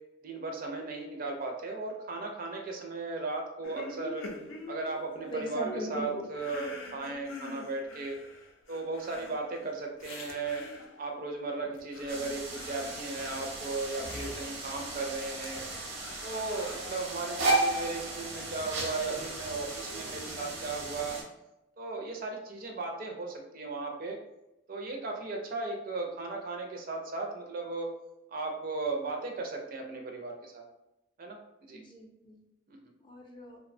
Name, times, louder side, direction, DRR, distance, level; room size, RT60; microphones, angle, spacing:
voice 1, 0.2-4.3 4.7-8.2 8.7-10.7 11.0-15.6 16.2-21.2 21.8-24.2 24.7-27.9 28.3-30.6 31.2-31.8 32.7-32.9, right 3 dB, 45° right, 2 dB, 0.4 m, -36 dB
sound 1, 3.6-11.1 11.6-15.1 15.4-17.5 18.0-20.1, left 2 dB, 85° left, 0.4 m, -46 dB
voice 2, 5.3-6.2 31.7-32.4 33.0-33.6, equal, 25° left, -1 dB, 0.4 m, -39 dB
sound 2, 12.1-21.2, right 2 dB, 85° right, 0.7 m, -35 dB
2.6 x 2.1 x 2.5 m, 0.91 s
head